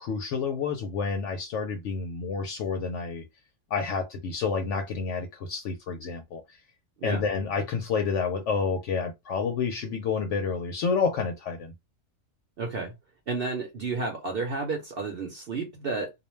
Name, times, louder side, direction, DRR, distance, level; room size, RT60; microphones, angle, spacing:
voice 1, 0.0-3.2 3.7-6.4 7.0-11.7, left 5 dB, 70° left, 0.9 m, -29 dB
voice 2, 12.6-12.9 13.3-16.1, right 4 dB, 55° right, 0.8 m, -31 dB
2.4 x 2.1 x 3.0 m
omnidirectional pair, 1.3 m